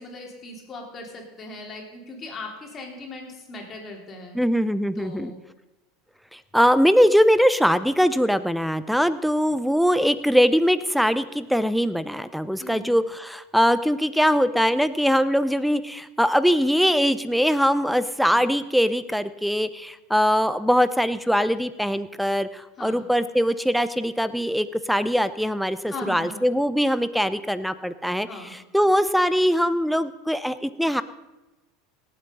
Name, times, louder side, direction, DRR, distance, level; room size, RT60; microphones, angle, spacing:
voice 1, 0.0-4.4 5.0-5.4 12.6-13.0 18.3-18.5 22.8-23.0 25.9-26.5 28.3-28.5, left 2 dB, 30° left, 1 dB, 3.8 m, -39 dB
voice 2, 4.3-5.3 6.3-31.0, equal, ahead, 14 dB, 0.7 m, -22 dB
18.0 x 8.2 x 5.5 m, 1.0 s
hypercardioid pair, 105°, 0 cm